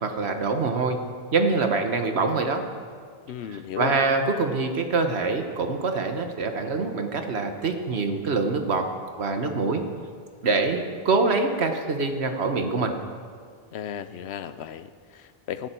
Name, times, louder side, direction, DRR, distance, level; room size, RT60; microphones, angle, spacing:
voice 1, 0.0-1.0 1.3-2.6 3.5-8.9 9.2-9.8 10.4-13.0, right 4 dB, 85° right, 6 dB, 1.4 m, -25 dB
voice 2, 3.3-4.0 13.7-15.7, left 9 dB, 90° left, 13 dB, 0.9 m, -35 dB
17.0 x 11.5 x 4.5 m, 2.1 s
omnidirectional pair, 1.1 m